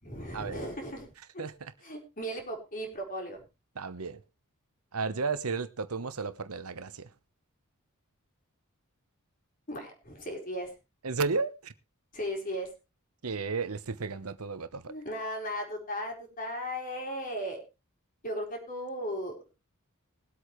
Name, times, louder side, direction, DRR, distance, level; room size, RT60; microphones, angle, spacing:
voice 1, 0.0-1.1 1.8-3.4 9.7-10.7 12.1-12.7 14.9-17.6 18.2-19.3, equal, 40° left, 4.5 m, -36 dB
voice 2, 1.4-1.7 3.7-4.2 4.9-7.1 11.0-11.7 13.2-14.9, right 4 dB, 85° right, 1.0 m, -33 dB
21.0 x 8.3 x 3.2 m
head